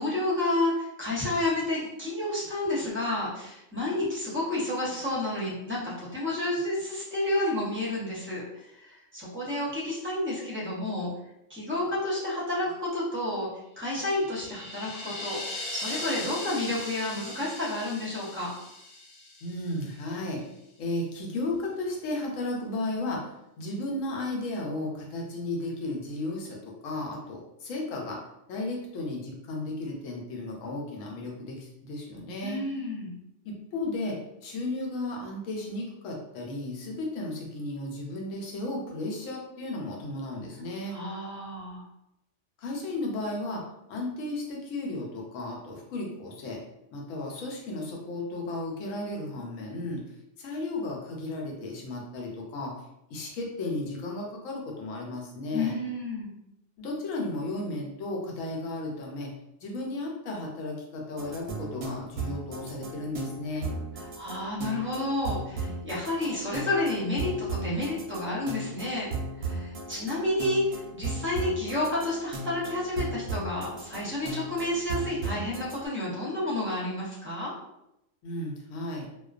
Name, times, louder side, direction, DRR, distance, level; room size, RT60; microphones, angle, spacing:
voice 1, 0.0-11.1 11.5-13.5 13.8-18.5 32.4-33.1 40.9-41.8 55.5-56.3 64.2-69.1 69.4-77.5, left 1 dB, 15° right, -7 dB, 0.5 m, -30 dB
sound 1, 14.0-20.1, left 2 dB, 55° left, 0.6 m, -39 dB
voice 2, 19.4-20.4 20.8-23.3 23.6-28.2 28.5-32.6 33.4-41.0 42.6-43.6 43.9-46.6 46.9-50.0 50.4-52.7 53.1-55.7 56.8-59.3 59.6-63.7 78.2-79.1, left 2 dB, 85° left, 0 dB, 1.0 m, -34 dB
sound 2, 61.2-75.8, right 3 dB, 65° right, 0.7 m, -36 dB
2.4 x 2.2 x 2.3 m, 0.85 s
omnidirectional pair, 1.3 m